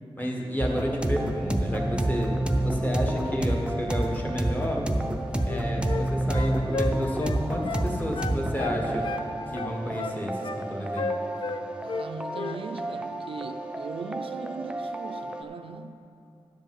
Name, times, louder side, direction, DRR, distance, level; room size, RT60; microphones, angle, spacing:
voice 1, 0.2-4.8 5.5-9.1 9.5-11.1, equal, 15° left, 1.4 m, -31 dB
sound 1, 0.6-15.4, right 1 dB, 10° right, 0.5 m, -29 dB
sound 2, 5.4-6.1 6.3-7.9 8.1-9.3 9.5-10.6 11.0-12.1 12.3-12.6, left 4 dB, 55° left, 0.4 m, -33 dB
voice 2, 11.8-16.0, right 5 dB, 65° right, 0.4 m, -39 dB
10.5 x 5.2 x 7.5 m
wide cardioid pair, 150°, 10 cm